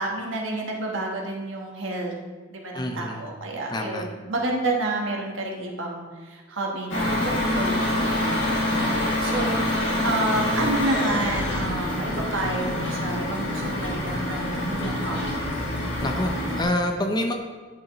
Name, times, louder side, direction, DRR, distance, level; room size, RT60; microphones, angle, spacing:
voice 1, 0.0-2.1 2.5-15.5, right 2 dB, 70° right, 0 dB, 1.3 m, -30 dB
voice 2, 2.7-3.3 3.7-4.0 16.0-17.3, left 1 dB, 20° left, 3 dB, 0.5 m, -27 dB
sound 1, 6.9-16.6, left 1 dB, 65° left, 1.8 m, -26 dB
10.5 x 5.0 x 3.0 m, 1.4 s
head